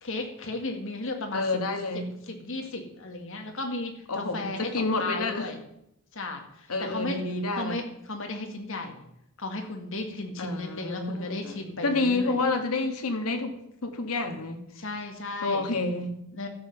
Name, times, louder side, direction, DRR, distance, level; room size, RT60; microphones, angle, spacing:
voice 1, 0.0-1.5 1.9-5.6 6.1-7.2 7.5-9.0 9.4-12.4 14.8-15.7 16.3-16.5, left 2 dB, 60° left, 3 dB, 1.9 m, -35 dB
voice 2, 1.3-2.1 4.1-5.5 6.7-7.8 10.4-11.6 11.8-14.6 15.4-16.2, left 3 dB, 85° left, 6 dB, 1.6 m, -29 dB
12.0 x 7.5 x 5.8 m, 0.80 s
head